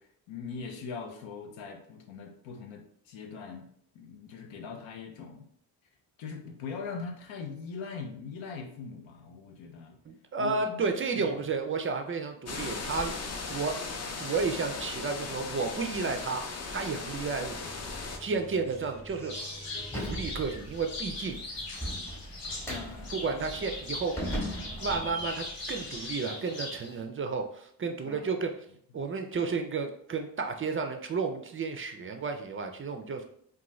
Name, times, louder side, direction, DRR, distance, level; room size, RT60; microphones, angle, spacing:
voice 1, 0.0-3.7 3.9-5.5 6.2-10.0 10.4-10.9 11.2-11.4 22.7-23.2 28.0-28.3, left 5 dB, 90° left, 4 dB, 0.6 m, -41 dB
voice 2, 10.1-13.8 14.2-16.4 16.7-17.6 18.2-19.6 19.9-21.6 23.1-24.1 24.8-28.5 28.9-33.2, right 4 dB, 30° right, 5 dB, 0.4 m, -32 dB
sound 1, 12.5-18.2, left 4 dB, 35° left, 0.5 m, -37 dB
sound 2, 17.5-26.1, equal, 5° left, 0.8 m, -40 dB
sound 3, 19.3-27.0, left 2 dB, 65° left, 1.0 m, -40 dB
2.5 x 2.3 x 3.0 m, 0.67 s
supercardioid pair, 60°, 45 cm